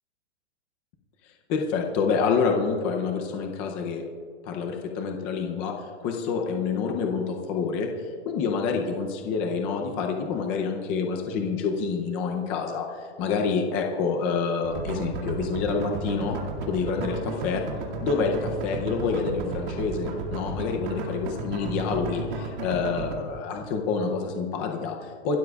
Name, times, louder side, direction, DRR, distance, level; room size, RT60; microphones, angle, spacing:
voice 1, 1.5-4.0 4.4-5.7 6.0-7.9 8.3-12.9 13.2-16.4 16.7-17.6 18.0-25.4, left 5 dB, 15° left, 3 dB, 0.5 m, -27 dB
sound 1, 14.6-23.1, right 3 dB, 50° right, 2.3 m, -33 dB
27.0 x 13.0 x 2.4 m, 2.1 s
supercardioid pair, 175°, 35 cm